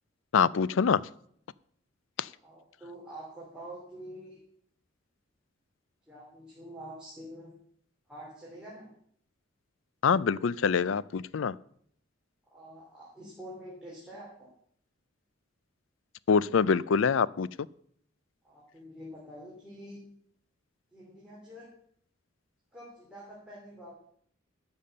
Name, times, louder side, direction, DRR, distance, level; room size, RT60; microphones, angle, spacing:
voice 1, 0.3-1.0 2.2-2.3 10.0-11.6 16.3-17.5, left 6 dB, 70° left, 20 dB, 0.4 m, -25 dB
voice 2, 2.4-4.4 6.1-7.5 8.1-8.9 12.5-14.5 18.4-20.0 20.9-21.7 22.7-23.9, equal, 5° right, -6 dB, 3.1 m, -46 dB
12.0 x 7.1 x 6.7 m, 0.65 s
head